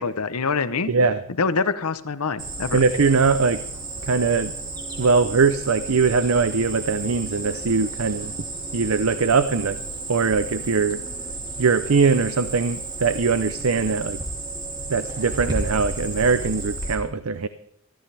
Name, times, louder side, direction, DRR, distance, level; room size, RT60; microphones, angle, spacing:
voice 1, 0.0-0.9 1.4-2.8, left 4 dB, 85° left, 13 dB, 0.8 m, -25 dB
voice 2, 0.9-1.2 2.7-3.6 4.0-4.5 5.0-8.3 8.7-9.8 10.1-11.0 11.6-14.2 14.9-17.5, right 4 dB, 70° right, 12 dB, 0.6 m, -21 dB
Cricket, 2.4-16.9, right 2 dB, 20° right, 2.8 m, -33 dB
22.5 x 14.0 x 3.4 m, 0.69 s
head